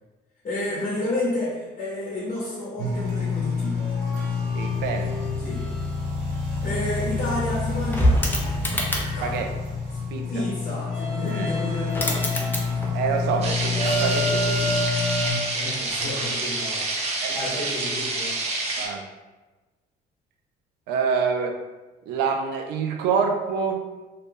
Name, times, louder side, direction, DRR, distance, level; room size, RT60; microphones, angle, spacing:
voice 1, 0.4-3.9 5.4-5.7 6.6-8.2 9.1-9.5 10.3-12.6 15.5-17.0 17.3-18.4, left 2 dB, 45° left, -6 dB, 0.8 m, -30 dB
sound 1, 2.8-15.3, left 3 dB, 60° right, 1.0 m, -27 dB
voice 2, 4.6-5.1 9.2-9.5 10.1-10.4 11.3-11.5 12.9-14.8 17.2-17.4 18.8-19.1 20.9-21.6 22.1-23.8, right 6 dB, 85° right, 4 dB, 0.4 m, -26 dB
sound 2, 7.0-9.3 11.4-11.5 11.7-13.1 13.4-14.5 15.9-16.1, equal, 10° left, 0.5 m, -27 dB
sound 3, 13.4-18.9, right 2 dB, 40° right, 0.6 m, -28 dB
2.7 x 2.2 x 3.4 m, 1.2 s
cardioid pair, 110°, 17 cm